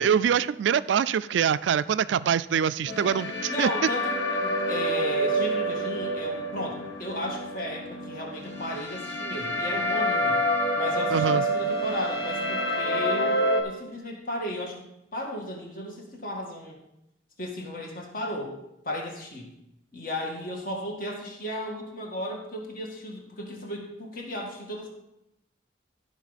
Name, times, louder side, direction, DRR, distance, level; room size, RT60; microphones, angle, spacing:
voice 1, 0.0-3.9 11.1-11.4, right 8 dB, 85° right, 16 dB, 0.3 m, -24 dB
sound 1, 2.9-13.6, equal, 70° left, 1.7 m, -28 dB
voice 2, 3.5-10.4 10.7-14.8 15.1-16.8 17.4-18.5 18.8-19.5 19.9-24.9, equal, 50° left, 0 dB, 2.0 m, -34 dB
15.0 x 5.7 x 4.1 m, 0.83 s
head